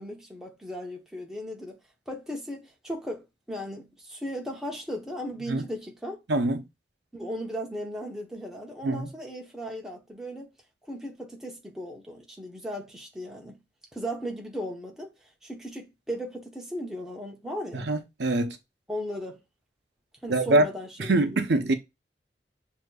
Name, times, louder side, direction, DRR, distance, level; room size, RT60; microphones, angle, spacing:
voice 1, 0.0-1.8 2.1-6.2 7.1-10.5 10.9-13.6 13.9-15.1 15.4-17.9 18.9-19.4 20.2-21.2 21.6-21.7, equal, 5° right, 0.8 m, -36 dB
voice 2, 6.3-6.6 8.8-9.1 17.7-18.6 20.3-20.7 21.0-21.7, right 2 dB, 75° right, 0.6 m, -24 dB
6.4 x 2.8 x 2.3 m
head